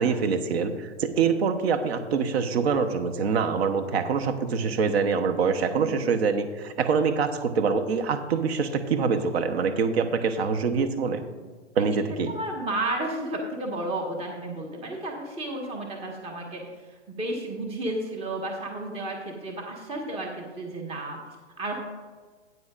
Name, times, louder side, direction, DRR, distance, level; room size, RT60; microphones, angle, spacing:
voice 1, 0.0-11.2 11.8-12.3, right 5 dB, 60° right, 8 dB, 1.1 m, -25 dB
voice 2, 12.3-21.2 21.6-21.8, right 1 dB, 15° right, 1 dB, 1.6 m, -32 dB
14.5 x 9.6 x 2.5 m, 1.4 s
hypercardioid pair, 120°, 36 cm